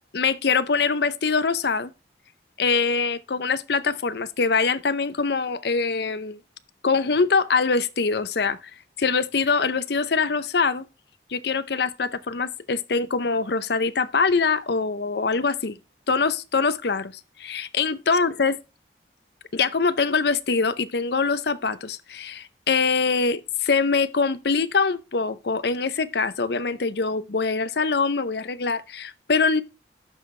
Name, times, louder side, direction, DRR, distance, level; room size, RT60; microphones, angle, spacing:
voice 1, 0.1-1.9 2.6-6.4 6.8-8.6 9.0-10.8 11.3-15.8 16.1-17.1 17.4-18.6 19.5-29.6, left 4 dB, 60° left, 0.6 m, -23 dB
12.0 x 5.9 x 3.2 m
head